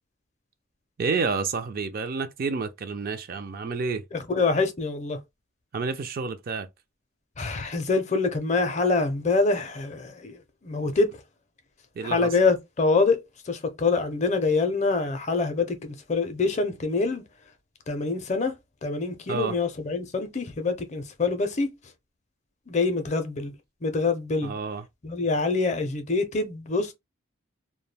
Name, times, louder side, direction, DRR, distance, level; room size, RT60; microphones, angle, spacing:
voice 1, 1.0-4.0 5.7-6.7 12.0-12.3 19.3-19.6 24.4-24.8, right 4 dB, 45° right, 0.3 m, -29 dB
voice 2, 4.1-5.2 7.4-11.1 12.0-17.2 17.9-18.5 18.8-21.7 22.7-23.5 23.8-24.5 25.0-26.9, left 3 dB, 35° left, 0.5 m, -25 dB
2.2 x 2.1 x 3.2 m
head